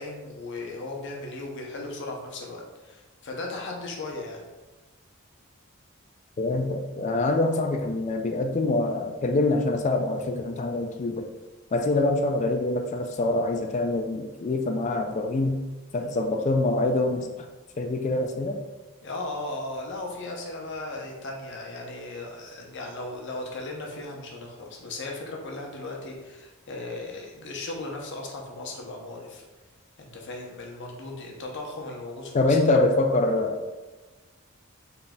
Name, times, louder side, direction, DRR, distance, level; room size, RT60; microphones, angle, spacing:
voice 1, 0.0-4.5 11.8-11.9 15.9-16.1 19.0-29.4 30.0-32.8, left 2 dB, 55° left, 0 dB, 0.7 m, -37 dB
voice 2, 6.4-11.3 11.7-15.6 15.9-17.5 17.8-18.6 32.3-33.6, left 2 dB, 35° left, 5 dB, 0.3 m, -25 dB
3.9 x 3.8 x 2.3 m, 1.2 s
head